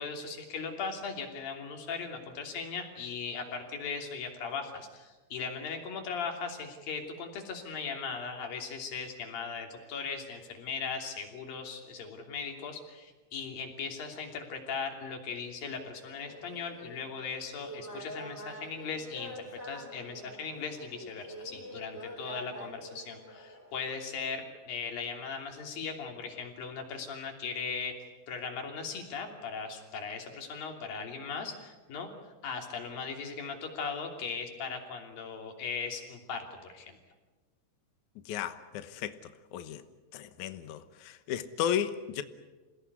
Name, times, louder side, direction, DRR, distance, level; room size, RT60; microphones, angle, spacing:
voice 1, 0.0-27.9 28.3-32.1 32.4-37.0, left 5 dB, 55° left, 4.6 m, -38 dB
sound 1, 16.1-24.0, equal, 15° left, 6.0 m, -46 dB
voice 2, 38.3-39.1 39.5-39.8 40.1-40.8 41.3-42.2, left 9 dB, 85° left, 1.7 m, -33 dB
27.5 x 17.5 x 9.7 m
omnidirectional pair, 5.2 m